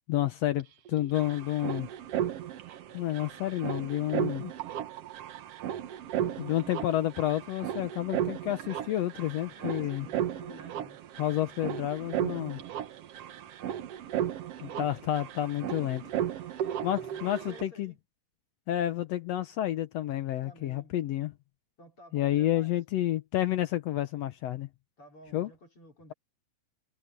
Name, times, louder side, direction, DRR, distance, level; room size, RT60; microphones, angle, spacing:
voice 1, 0.0-1.9 2.9-4.5 6.2-10.1 11.2-12.6 14.6-16.0 16.8-17.9 18.7-21.3 22.1-24.7 25.3-25.5, left 13 dB, 80° left, 1.4 m, -30 dB
sound 1, 0.6-0.7 0.9-17.6, right 10 dB, 65° right, 1.5 m, -35 dB
voice 2, 9.5-11.1 14.6-14.9 16.8-18.0 20.4-20.9 21.8-22.7 25.0-26.1, left 1 dB, 40° left, 4.7 m, -52 dB
omnidirectional pair, 4.0 m